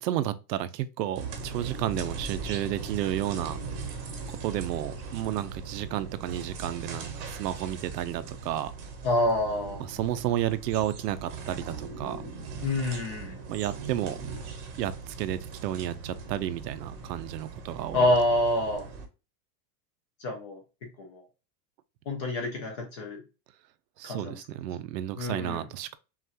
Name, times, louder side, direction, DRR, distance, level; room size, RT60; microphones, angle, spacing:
voice 1, 0.0-3.6 4.3-8.7 9.8-12.2 13.5-14.2 14.8-18.1 24.0-26.0, right 12 dB, 85° right, 0.7 m, -32 dB
sound 1, 1.1-19.1, right 4 dB, 30° right, 0.8 m, -39 dB
voice 2, 9.0-9.8 12.6-13.4 17.9-18.9 20.2-20.6 21.0-21.2 22.1-23.2 24.0-24.4 25.2-25.7, left 1 dB, 20° left, 0.4 m, -27 dB
5.8 x 2.5 x 2.8 m
supercardioid pair, 170°, 48 cm